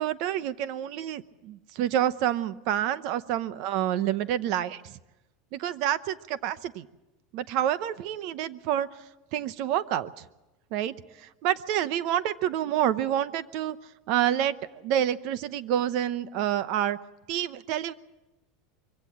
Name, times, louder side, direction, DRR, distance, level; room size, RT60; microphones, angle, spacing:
voice 1, 0.0-5.0 5.5-6.9 7.3-8.9 9.3-10.3 10.7-13.8 14.1-17.0 17.3-17.9, right 11 dB, 45° right, 15 dB, 0.8 m, -28 dB
23.5 x 16.5 x 7.5 m, 1.0 s
supercardioid pair, 170°, 0 cm